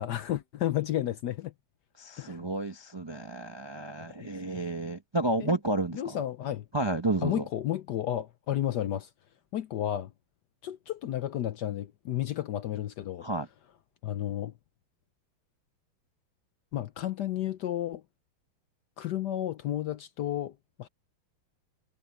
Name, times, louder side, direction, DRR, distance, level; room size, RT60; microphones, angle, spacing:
voice 1, 0.0-1.5 2.2-2.4 4.5-4.6 5.4-5.5 5.9-6.7 7.2-9.1 9.5-10.1 10.6-13.3 14.0-14.5 16.7-18.0 19.0-20.9, left 12 dB, 65° left, 1.1 m, -32 dB
voice 2, 2.0-6.2 6.7-7.4 13.2-13.5, right 2 dB, 35° right, 0.4 m, -31 dB
omnidirectional pair, 2.3 m